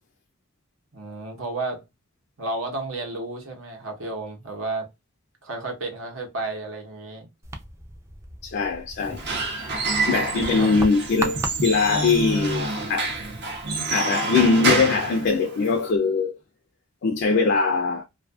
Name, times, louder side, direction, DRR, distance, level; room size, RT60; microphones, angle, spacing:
voice 1, 0.9-1.8 2.4-4.9 5.4-7.3 10.4-10.7, right 2 dB, 75° right, 1.0 m, -32 dB
sound 1, 7.4-14.0, right 2 dB, 15° right, 0.4 m, -38 dB
voice 2, 8.4-9.2 10.1-13.2 13.9-16.4 17.0-18.0, left 4 dB, 55° left, 0.4 m, -22 dB
Squeak / Wood, 9.0-15.9, right 3 dB, 55° right, 0.7 m, -27 dB
2.6 x 2.4 x 2.3 m
head